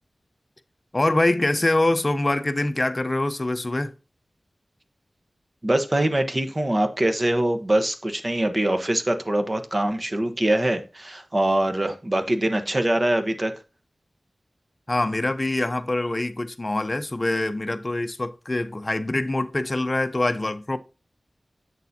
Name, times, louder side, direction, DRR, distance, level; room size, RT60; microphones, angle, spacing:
voice 1, 0.9-3.9 14.9-20.8, left 2 dB, 30° left, 0.7 m, -24 dB
voice 2, 5.6-13.5, right 1 dB, 35° right, 1.0 m, -23 dB
8.1 x 6.7 x 2.7 m
wide cardioid pair, 80°, 0 cm